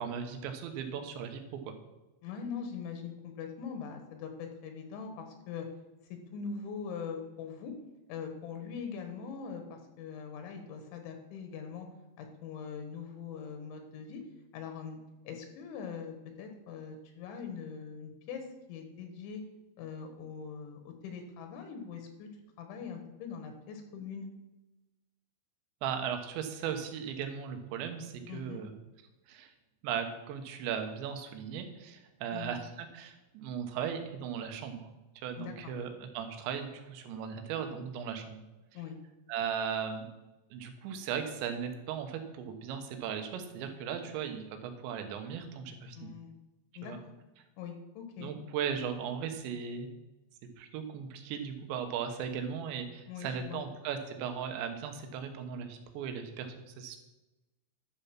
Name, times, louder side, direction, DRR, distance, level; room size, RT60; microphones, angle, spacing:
voice 1, 0.0-1.7 25.8-28.7 29.3-29.5 29.8-34.9 35.2-38.4 39.3-40.1 40.5-46.1 46.8-47.0 48.2-49.9 50.6-57.0, right 7 dB, 75° right, 6 dB, 3.3 m, -37 dB
voice 2, 2.2-5.7 6.3-7.8 8.1-11.9 12.2-14.2 14.5-15.0 15.3-19.4 19.8-22.3 22.6-24.3 28.3-28.6 32.3-32.5 35.4-35.7 38.8-39.0 45.9-46.3 46.8-47.1 47.6-48.3 53.1-53.7, left 6 dB, 80° left, 5 dB, 3.7 m, -42 dB
11.5 x 7.0 x 5.9 m, 1.0 s
omnidirectional pair, 5.4 m